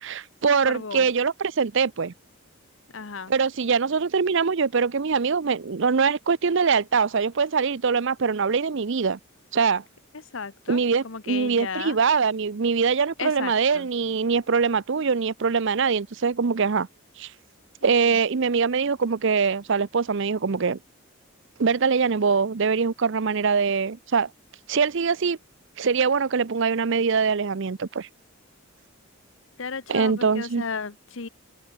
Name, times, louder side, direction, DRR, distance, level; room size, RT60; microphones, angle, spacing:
voice 1, 0.0-2.1 3.3-9.2 9.5-9.8 10.7-16.9 17.2-17.3 17.8-20.8 21.6-24.3 24.7-25.4 25.8-28.1 29.9-30.6, right 5 dB, 60° right, 0.6 m, -23 dB
voice 2, 0.6-1.1 2.9-3.3 10.3-12.0 13.2-13.9 17.8-18.2 29.6-31.3, left 5 dB, 65° left, 1.0 m, -34 dB
head